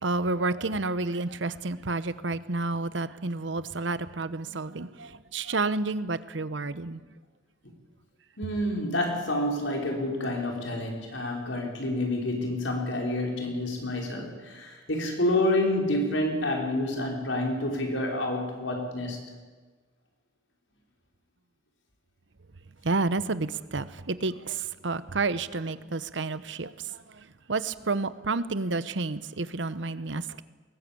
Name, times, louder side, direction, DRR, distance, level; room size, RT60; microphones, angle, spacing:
voice 1, 0.0-7.0 22.8-30.4, right 3 dB, 70° right, 15 dB, 1.0 m, -30 dB
voice 2, 8.4-19.2, left 1 dB, 75° left, 1 dB, 5.1 m, -28 dB
21.5 x 18.5 x 8.6 m, 1.4 s
head